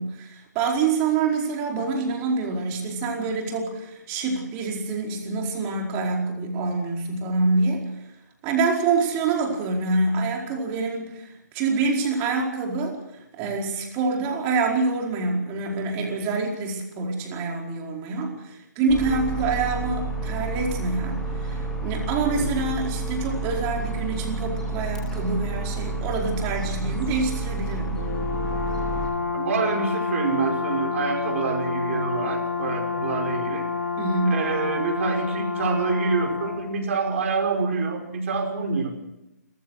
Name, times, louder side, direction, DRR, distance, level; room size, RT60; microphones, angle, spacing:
voice 1, 0.0-8.1 8.4-28.0 34.0-34.4, right 3 dB, 25° right, 0 dB, 4.8 m, -26 dB
sound 1, 18.9-29.1, right 3 dB, 5° left, 4.9 m, -30 dB
Brass instrument, 28.0-36.7, left 5 dB, 75° left, 3.8 m, -29 dB
voice 2, 29.3-33.7 34.3-38.9, right 4 dB, 50° right, 2 dB, 5.5 m, -26 dB
29.0 x 15.0 x 6.5 m, 0.88 s
figure-of-eight pair, 140°, 9 cm